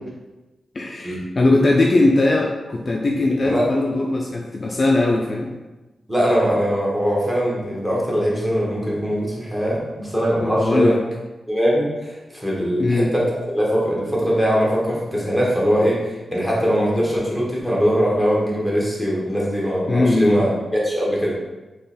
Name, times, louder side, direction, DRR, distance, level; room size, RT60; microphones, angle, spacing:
voice 1, 0.7-5.5 10.4-11.0 12.8-13.1 19.9-20.6, left 2 dB, 35° left, -1 dB, 0.4 m, -19 dB
voice 2, 6.1-10.9 11.5-16.0 16.3-21.3, equal, 5° right, -5 dB, 1.3 m, -21 dB
3.8 x 3.0 x 4.1 m, 1.1 s
wide cardioid pair, 125°, 0 cm